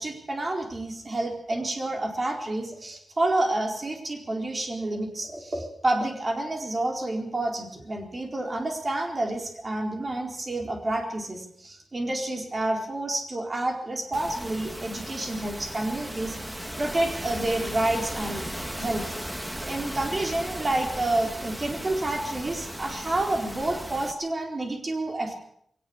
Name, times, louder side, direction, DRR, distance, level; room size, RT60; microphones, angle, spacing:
voice 1, 0.0-18.5 18.7-19.1 19.6-25.3, right 2 dB, 25° right, 2 dB, 4.3 m, -29 dB
sound 1, 14.1-24.1, equal, 5° right, 2.0 m, -36 dB
21.5 x 18.5 x 7.2 m, 0.71 s
wide cardioid pair, 175°, 0 cm